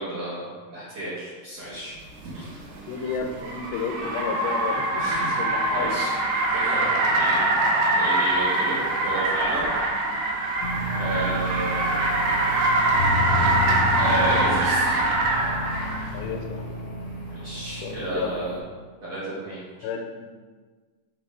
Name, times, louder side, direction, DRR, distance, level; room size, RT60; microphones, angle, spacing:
voice 1, 0.0-1.9 2.2-2.5 2.9-3.1 5.0-5.4 5.6-6.2 6.5-7.6 7.9-10.0 11.0-12.0 13.3-13.6 13.9-15.0 17.3-18.6 19.0-19.9, right 1 dB, 55° right, -11 dB, 2.0 m, -32 dB
Car, 2.2-16.1, right 2 dB, 80° right, 1.9 m, -24 dB
voice 2, 2.9-6.0 10.9-11.1 16.1-16.8 17.8-18.4 19.8-20.3, left 6 dB, 85° left, 3 dB, 2.8 m, -32 dB
sound 1, 10.6-18.6, left 2 dB, 60° left, 1.6 m, -31 dB
6.1 x 5.2 x 3.6 m, 1.4 s
omnidirectional pair, 4.9 m